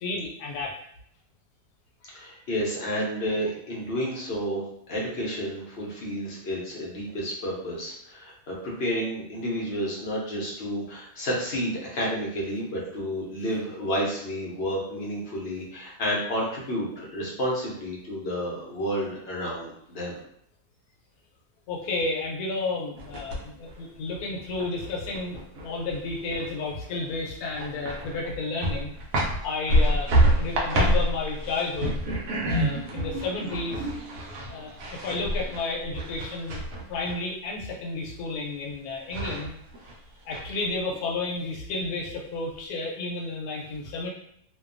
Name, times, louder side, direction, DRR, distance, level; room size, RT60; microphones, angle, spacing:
voice 1, 0.0-0.7 21.7-28.9 29.4-30.1 30.4-32.0 32.5-33.8 34.5-36.6 36.9-39.5 40.2-44.1, left 3 dB, 75° left, -3 dB, 1.1 m, -32 dB
voice 2, 2.0-4.6 4.9-20.2, equal, 60° left, -4 dB, 0.7 m, -30 dB
sound 1, 23.0-23.7 24.1-26.7 26.9-27.0 27.5-28.3 28.6-37.2 38.7-38.8 39.1-39.9 40.3-41.0, right 1 dB, 70° right, 0.9 m, -27 dB
2.7 x 2.2 x 2.4 m, 0.72 s
omnidirectional pair, 1.6 m